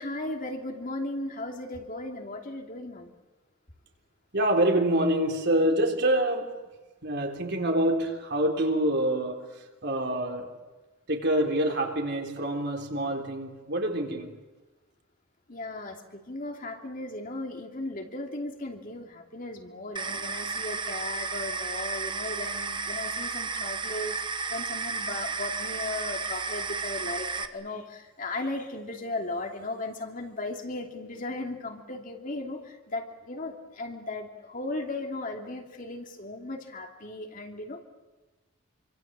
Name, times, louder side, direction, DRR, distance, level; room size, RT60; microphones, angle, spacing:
voice 1, 0.0-3.1 15.5-37.8, left 2 dB, 40° left, 3 dB, 2.8 m, -36 dB
voice 2, 4.3-6.5 7.0-9.5 9.8-10.5 11.1-14.3, right 1 dB, 50° right, 3 dB, 3.7 m, -26 dB
sound 1, 20.0-27.5, right 4 dB, 20° right, 1.1 m, -33 dB
26.5 x 25.5 x 7.5 m, 1.2 s
head